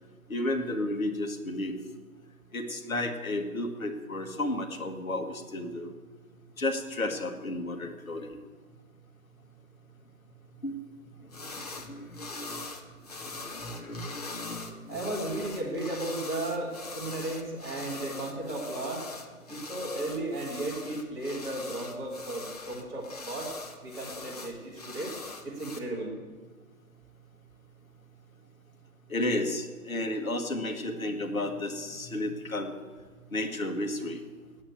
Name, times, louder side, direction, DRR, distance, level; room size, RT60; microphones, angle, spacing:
voice 1, 0.3-1.8 2.5-5.9 6.6-8.4 10.6-10.8 11.3-11.4 11.8-12.7 13.2-15.1 29.1-32.7 33.3-34.2, left 1 dB, 65° left, 5 dB, 1.6 m, -33 dB
sound 1, 11.3-11.9 12.1-25.8, left 3 dB, 25° left, 0.8 m, -42 dB
voice 2, 14.9-19.0 19.5-23.5 23.8-25.1 25.4-26.2, right 1 dB, 10° right, -6 dB, 1.7 m, -35 dB
8.7 x 8.7 x 9.4 m, 1.4 s
figure-of-eight pair, 145°, 44 cm